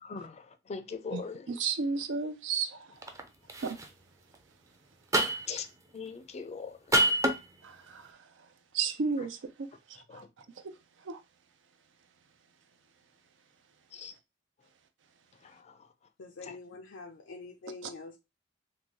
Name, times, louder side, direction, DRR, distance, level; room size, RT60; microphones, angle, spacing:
voice 1, 0.0-1.5 5.5-5.7 5.9-7.0 10.1-10.3 13.9-14.1 15.4-15.9 16.4-16.6, left 5 dB, 35° left, 0.4 m, -41 dB
voice 2, 1.1-2.9 3.6-3.8 7.6-8.1 8.7-9.7 10.1-10.2 11.1-11.2 17.8-17.9, right 5 dB, 80° right, 0.5 m, -33 dB
sound 1, 3.0-3.2 3.5-3.9 5.1-5.6 6.9-7.4, right 1 dB, 15° right, 0.5 m, -25 dB
voice 3, 16.2-18.2, left 3 dB, 85° left, 0.5 m, -45 dB
3.7 x 2.3 x 3.1 m
head